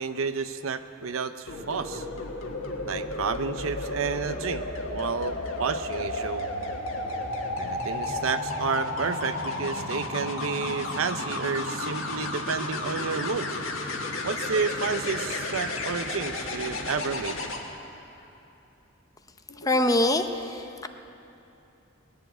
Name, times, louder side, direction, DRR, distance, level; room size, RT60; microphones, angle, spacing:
voice 1, 0.0-2.1 2.8-6.4 7.6-13.5 14.2-17.4, right 5 dB, 80° right, 10 dB, 0.6 m, -31 dB
sound 1, 1.5-17.6 19.5-19.8, left 2 dB, 70° left, 1.6 m, -32 dB
voice 2, 19.6-20.9, left 1 dB, 15° left, 7 dB, 0.6 m, -24 dB
20.0 x 7.1 x 8.9 m, 2.9 s
head